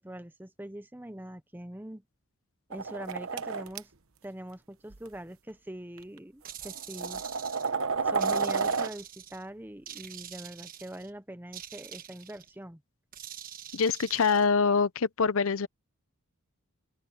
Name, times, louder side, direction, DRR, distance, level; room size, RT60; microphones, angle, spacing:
voice 1, 0.0-2.0 2.7-3.9 4.2-7.2 8.0-12.8, right 1 dB, 10° right, 0.9 m, -43 dB
sound 1, 2.7-3.8 4.9-5.1 6.0-6.1 6.6-8.9, right 5 dB, 65° right, 1.1 m, -30 dB
sound 2, 6.4-7.7 8.2-9.4 9.9-11.1 11.5-12.5 13.1-14.5, right 10 dB, 40° right, 1.3 m, -45 dB
voice 2, 13.7-15.7, left 5 dB, 65° left, 0.7 m, -25 dB
open air
head